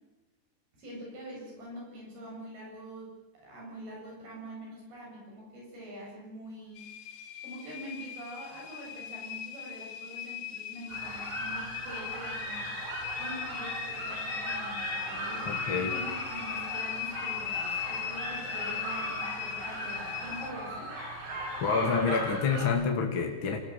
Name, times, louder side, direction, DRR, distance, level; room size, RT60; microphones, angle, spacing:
voice 1, 0.7-6.9 7.4-20.9, equal, 65° right, -2 dB, 9.8 m, -45 dB
sound 1, 6.8-20.5, left 10 dB, 80° left, 3.5 m, -38 dB
sound 2, 10.9-22.7, right 1 dB, 85° right, 9.1 m, -38 dB
voice 2, 15.5-15.9 21.6-23.6, left 5 dB, 35° left, 2 dB, 2.3 m, -28 dB
28.0 x 19.0 x 7.5 m, 1.0 s
omnidirectional pair, 4.7 m